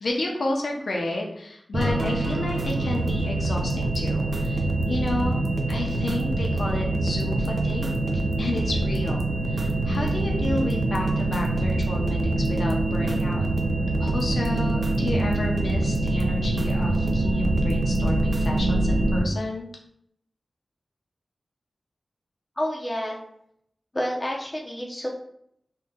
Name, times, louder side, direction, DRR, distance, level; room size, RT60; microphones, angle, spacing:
voice 1, 0.0-5.4 5.7-8.1 8.4-13.5 14.0-19.7, left 2 dB, 75° left, 0 dB, 0.6 m, -31 dB
sound 1, 1.7-19.2, right 2 dB, 85° right, 0.7 m, -26 dB
sound 2, 2.6-18.6, right 1 dB, 55° right, 0.4 m, -30 dB
voice 2, 22.6-23.2 23.9-25.1, equal, 15° left, -3 dB, 0.6 m, -29 dB
2.7 x 2.2 x 3.7 m, 0.71 s
wide cardioid pair, 60°, 0 cm